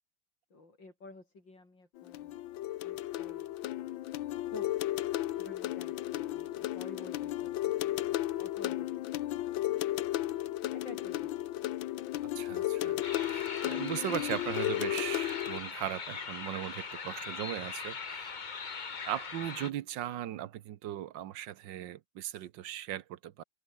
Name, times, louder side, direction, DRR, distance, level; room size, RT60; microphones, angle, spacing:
voice 1, 0.5-2.4 2.8-3.5 4.5-4.7 5.4-8.9 9.6-9.8 10.7-11.4, left 2 dB, 70° left, 7.1 m, -50 dB
sound 1, 2.0-15.6, left 14 dB, 90° left, 1.5 m, -34 dB
voice 2, 12.3-18.4 19.0-23.4, right 12 dB, 75° right, 1.6 m, -38 dB
sound 2, 13.0-19.7, left 5 dB, 35° left, 0.9 m, -40 dB
omnidirectional pair, 2.1 m